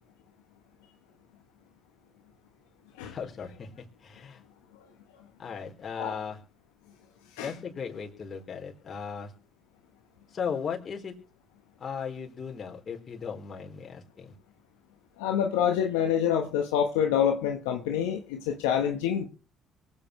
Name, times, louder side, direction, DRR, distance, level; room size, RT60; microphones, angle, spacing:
voice 1, 3.1-4.4 5.4-6.4 7.4-9.3 10.3-11.2 11.8-14.3, left 6 dB, 45° left, 4.2 m, -37 dB
voice 2, 15.2-19.3, left 8 dB, 85° left, 1.3 m, -26 dB
24.0 x 8.9 x 3.3 m
hypercardioid pair, 55°, 0 cm